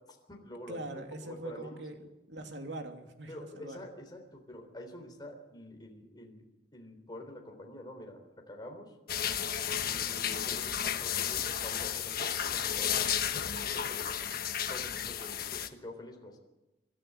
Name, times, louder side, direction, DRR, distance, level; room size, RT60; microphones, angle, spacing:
voice 1, 0.1-1.8 3.3-6.4 6.7-8.2 8.5-8.9 9.8-13.1 13.6-14.2 14.7-16.4, left 1 dB, 25° left, 2 dB, 3.6 m, -47 dB
voice 2, 0.7-3.8, right 1 dB, 80° right, 4 dB, 2.8 m, -42 dB
sound 1, 9.1-15.7, left 9 dB, 55° left, 1.3 m, -33 dB
26.0 x 13.5 x 8.1 m, 1.0 s
head